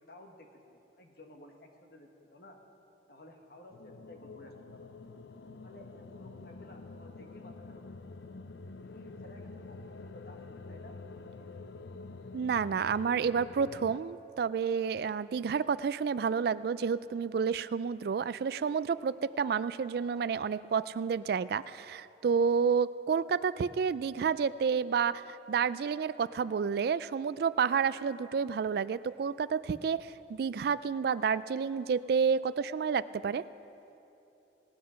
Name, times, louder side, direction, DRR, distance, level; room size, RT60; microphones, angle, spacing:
voice 1, 0.1-2.6 3.1-4.9 5.6-7.9 8.8-11.0, left 1 dB, 55° left, 3 dB, 1.4 m, -54 dB
sound 1, 3.7-14.0, left 3 dB, 70° left, 0.5 m, -47 dB
voice 2, 12.3-33.4, right 6 dB, 55° right, 16 dB, 0.3 m, -30 dB
18.0 x 9.5 x 5.7 m, 2.9 s
head